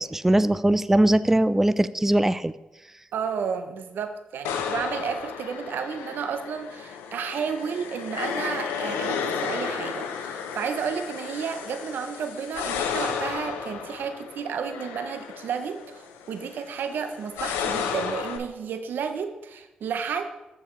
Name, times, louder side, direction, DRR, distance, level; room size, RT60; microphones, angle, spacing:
voice 1, 0.0-2.5, right 1 dB, 10° right, 15 dB, 0.3 m, -21 dB
voice 2, 3.1-20.3, right 6 dB, 75° right, 8 dB, 0.7 m, -32 dB
sound 1, 4.4-18.4, left 7 dB, 90° left, 0.6 m, -33 dB
13.5 x 4.6 x 3.1 m, 0.98 s
supercardioid pair, 45°, 3 cm